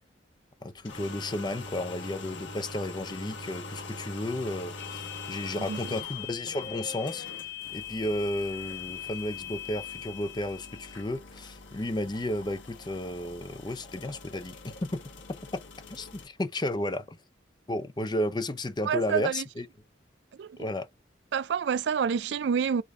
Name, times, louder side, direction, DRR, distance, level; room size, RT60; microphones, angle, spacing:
voice 1, 0.6-7.3 7.7-15.0 15.5-15.6 15.9-17.2 17.7-19.7 20.6-20.9, left 1 dB, 25° left, 0.5 m, -33 dB
sound 1, 0.7-16.3, left 2 dB, 90° left, 1.6 m, -44 dB
sound 2, 4.8-11.1, left 11 dB, 60° left, 0.9 m, -41 dB
voice 2, 18.8-19.4 20.3-20.7 21.3-22.8, right 7 dB, 70° right, 0.3 m, -28 dB
5.0 x 2.6 x 3.5 m
head